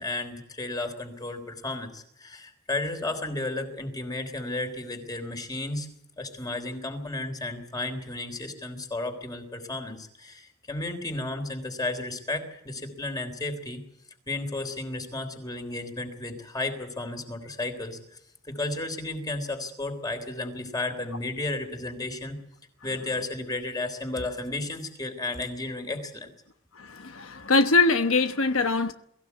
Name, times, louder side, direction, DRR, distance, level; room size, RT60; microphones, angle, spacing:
voice 1, 0.0-5.9 6.2-13.8 14.3-18.0 18.4-22.4 22.8-26.3, left 2 dB, 20° left, 3.7 m, -33 dB
voice 2, 26.8-28.9, left 3 dB, 80° left, 1.1 m, -23 dB
23.0 x 15.5 x 8.3 m
head